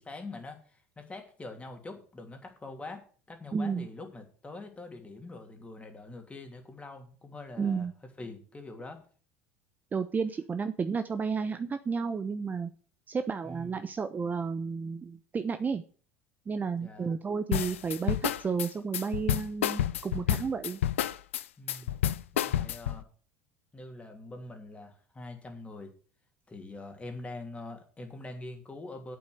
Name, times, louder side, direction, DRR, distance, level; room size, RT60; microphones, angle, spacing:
voice 1, 0.0-7.9 8.2-9.0 13.4-13.8 16.8-17.2 21.6-21.9 22.3-23.1 23.7-25.9 26.5-29.2, left 2 dB, 20° left, 4 dB, 2.9 m, -44 dB
voice 2, 3.5-3.9 7.6-7.9 9.9-12.7 13.1-15.8 16.5-20.8, right 5 dB, 25° right, 9 dB, 0.9 m, -32 dB
sound 1, 17.5-23.0, left 11 dB, 80° left, 0.5 m, -29 dB
8.4 x 8.0 x 6.6 m, 0.40 s
hypercardioid pair, 75°, 7 cm